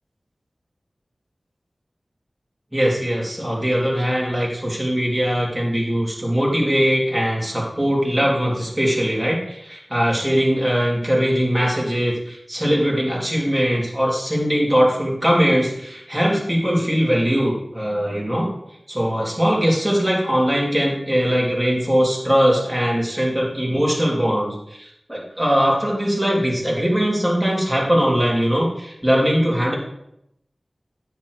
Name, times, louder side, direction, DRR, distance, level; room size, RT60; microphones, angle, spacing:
voice 1, 2.7-18.5 18.9-29.7, equal, 10° right, -3 dB, 2.6 m, -20 dB
9.4 x 3.2 x 6.2 m, 0.79 s
wide cardioid pair, 55°, 0 cm